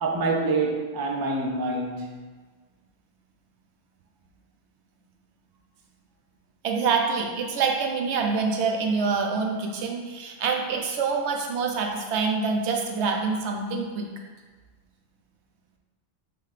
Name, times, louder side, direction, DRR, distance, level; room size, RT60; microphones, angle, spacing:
voice 1, 0.0-2.2, right 3 dB, 35° right, 0 dB, 0.4 m, -26 dB
voice 2, 6.6-14.1, right 5 dB, 80° right, 2 dB, 0.9 m, -26 dB
5.6 x 2.8 x 3.2 m, 1.4 s
omnidirectional pair, 1.1 m